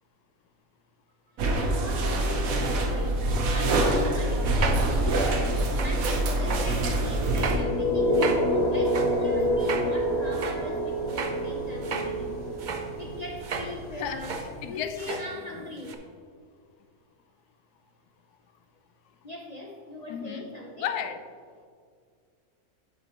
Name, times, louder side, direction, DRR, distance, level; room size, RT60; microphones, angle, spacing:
sound 1, 1.4-7.6, right 1 dB, 65° right, 1.3 m, -25 dB
voice 1, 1.6-3.2 3.5-5.5 5.8-12.4 13.0-14.4 14.7-16.0 19.2-20.9, left 2 dB, 65° left, -1 dB, 0.4 m, -39 dB
sound 2, 4.4-6.1 6.4-6.8 7.3-7.7 8.1-9.9 10.3-10.6 11.1-12.1 12.6-12.9 13.4-13.7 14.0-14.7 14.9-15.3 15.8-15.9, right 4 dB, 80° right, 0.4 m, -35 dB
sound 3, 6.7-14.7, equal, 50° left, 2.2 m, -28 dB
voice 2, 14.6-15.2 20.1-20.5 20.8-21.2, left 9 dB, 85° left, 10 dB, 1.1 m, -33 dB
8.1 x 7.6 x 3.0 m, 2.1 s
omnidirectional pair, 1.6 m